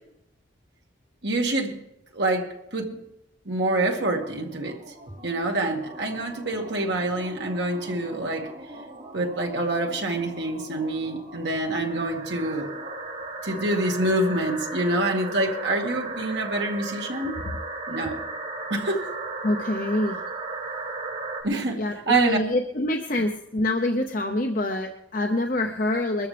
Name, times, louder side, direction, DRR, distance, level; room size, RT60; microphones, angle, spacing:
voice 1, 1.2-1.7 2.1-2.9 3.5-4.8 5.2-8.5 9.1-12.7 13.4-17.4 17.9-18.2 18.7-19.1 21.4-21.8 22.1-22.4, right 2 dB, 65° right, 1 dB, 2.1 m, -26 dB
sound 1, 3.8-21.4, right 3 dB, 50° right, 3.5 m, -37 dB
voice 2, 19.4-20.2 21.8-26.3, left 1 dB, 45° left, 4 dB, 0.8 m, -26 dB
22.0 x 13.5 x 3.4 m, 0.83 s
head